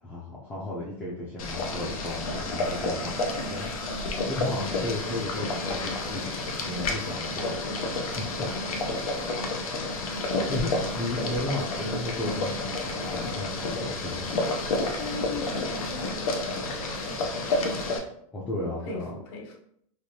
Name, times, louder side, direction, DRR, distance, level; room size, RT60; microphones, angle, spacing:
voice 1, 0.0-3.7 4.3-6.3 6.6-7.6 8.2-8.3 10.5-14.4 18.3-19.2, left 1 dB, 10° left, -7 dB, 0.5 m, -34 dB
Boiling, 1.4-18.0, left 2 dB, 85° left, 0.7 m, -30 dB
voice 2, 4.4-4.9 11.2-11.4 15.0-17.2 18.7-19.5, left 3 dB, 50° left, 1 dB, 0.8 m, -40 dB
3.4 x 2.6 x 2.7 m, 0.70 s
supercardioid pair, 145°, 18 cm